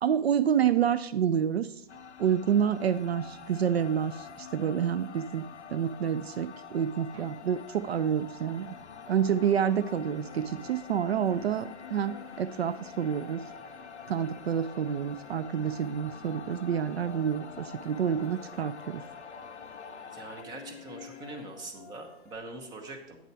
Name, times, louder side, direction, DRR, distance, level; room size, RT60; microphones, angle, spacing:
voice 1, 0.0-1.8 2.2-8.7 9.1-13.4 14.1-19.0, right 8 dB, 65° right, 13 dB, 0.5 m, -28 dB
sound 1, 1.9-20.4, left 7 dB, 90° left, 0.5 m, -47 dB
sound 2, 2.6-22.4, left 8 dB, 35° left, 1.3 m, -54 dB
sound 3, 7.8-21.5, left 3 dB, 10° left, 0.3 m, -52 dB
voice 2, 20.1-23.2, right 2 dB, 10° right, 4 dB, 0.9 m, -43 dB
8.8 x 6.8 x 4.6 m, 0.88 s
figure-of-eight pair, 130°, 33 cm